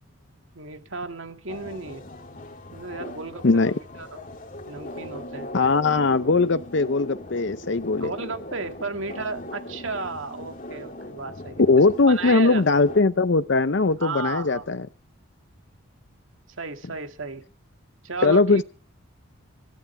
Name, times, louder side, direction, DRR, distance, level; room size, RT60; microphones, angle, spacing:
voice 1, 0.5-2.0 2.7-4.2 4.7-5.5 7.9-12.8 14.0-14.7 16.6-17.4 18.0-18.6, right 3 dB, 70° right, 2.2 m, -34 dB
sound 1, 1.5-13.0, left 1 dB, 40° left, 2.7 m, -40 dB
voice 2, 3.4-3.8 5.5-8.1 11.7-14.9 18.2-18.6, left 3 dB, 60° left, 0.7 m, -20 dB
25.5 x 12.5 x 3.4 m
head